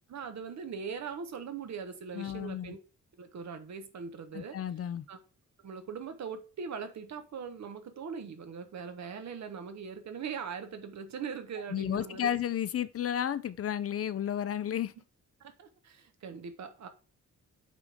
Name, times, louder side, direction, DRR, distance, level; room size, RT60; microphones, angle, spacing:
voice 1, 0.1-2.8 3.2-4.6 5.1-5.2 5.6-12.3 15.4-16.9, right 6 dB, 60° right, 1.2 m, -41 dB
voice 2, 2.1-2.8 4.3-5.0 11.7-14.9, left 10 dB, 50° left, 0.5 m, -32 dB
8.2 x 5.1 x 3.5 m
wide cardioid pair, 150°, 31 cm